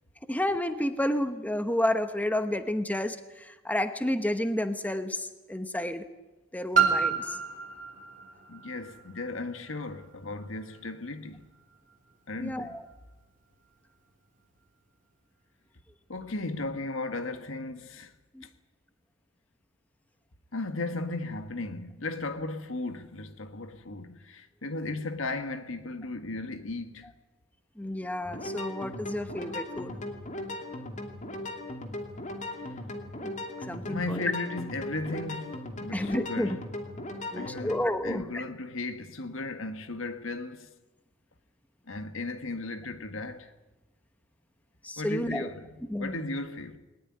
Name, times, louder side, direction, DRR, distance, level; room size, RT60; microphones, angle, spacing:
voice 1, 0.2-6.0 6.5-7.4 12.4-12.8 18.3-18.4 27.8-30.0 33.2-34.3 35.9-36.6 37.3-38.4 44.8-45.5 45.9-46.2, left 1 dB, 10° left, 1.1 m, -31 dB
Piano, 6.7-12.2 12.9-13.0, right 6 dB, 40° right, 3.2 m, -31 dB
voice 2, 8.5-11.5 12.3-12.8 16.1-18.1 20.5-27.1 33.9-36.6 37.3-40.7 41.9-43.5 45.0-46.8, left 2 dB, 70° left, 1.6 m, -36 dB
sound 1, 28.2-37.8, left 1 dB, 35° left, 2.6 m, -38 dB
20.5 x 19.5 x 9.7 m
head